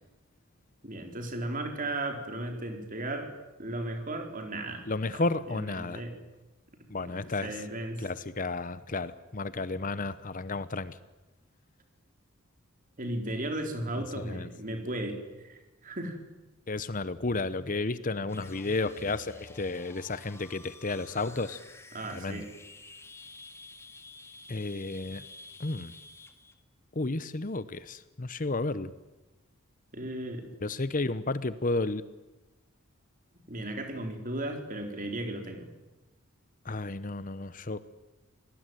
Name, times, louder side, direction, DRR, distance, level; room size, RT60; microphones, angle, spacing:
voice 1, 0.8-3.3 3.6-4.9 5.1-5.2 5.5-6.1 7.0-8.0 13.0-16.2 21.9-22.5 29.9-30.5 33.5-35.7, right 1 dB, 40° right, 5 dB, 4.3 m, -35 dB
voice 2, 4.9-6.0 6.9-7.6 8.0-11.0 14.2-14.5 16.7-21.6 22.1-22.4 24.5-25.2 25.6-25.9 26.9-28.9 30.6-32.0 36.6-37.8, left 3 dB, 40° left, 15 dB, 0.9 m, -32 dB
sound 1, 18.3-26.5, left 3 dB, 10° left, 2.0 m, -51 dB
27.0 x 19.5 x 9.2 m, 1.1 s
head